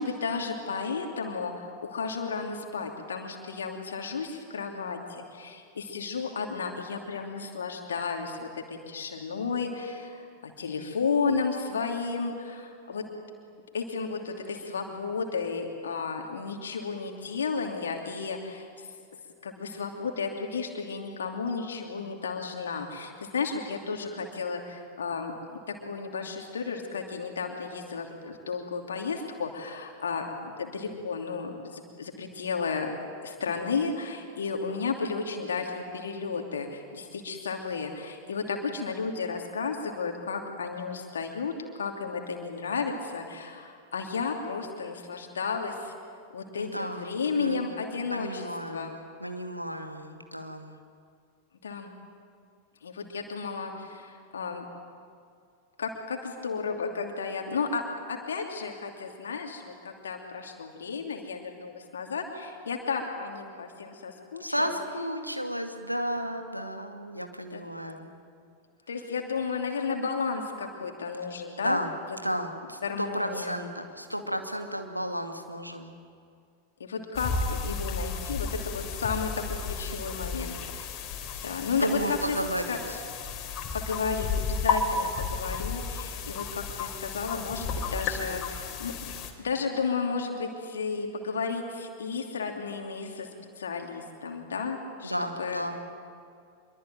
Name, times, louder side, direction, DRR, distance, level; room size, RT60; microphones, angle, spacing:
voice 1, 0.0-13.0 13.7-18.7 19.4-25.3 25.7-32.9 33.2-45.9 46.3-48.9 51.6-51.9 52.8-54.6 55.8-64.7 67.5-67.6 68.9-71.8 72.8-73.6 76.8-81.0 81.4-82.0 82.3-82.4 82.7-82.8 83.5-89.1 89.4-93.3 93.6-95.1 95.4-95.6, left 5 dB, 65° left, 2 dB, 2.8 m, -33 dB
voice 2, 46.6-47.8 48.1-50.8 64.4-68.2 71.6-71.9 72.2-76.0 81.3-81.5 81.7-83.0 95.0-95.8, equal, 90° right, 5 dB, 2.3 m, -33 dB
sound 1, 77.1-89.3, left 4 dB, 35° left, 3.6 m, -33 dB
26.0 x 23.5 x 9.2 m, 2.3 s
figure-of-eight pair, 90°, 0 cm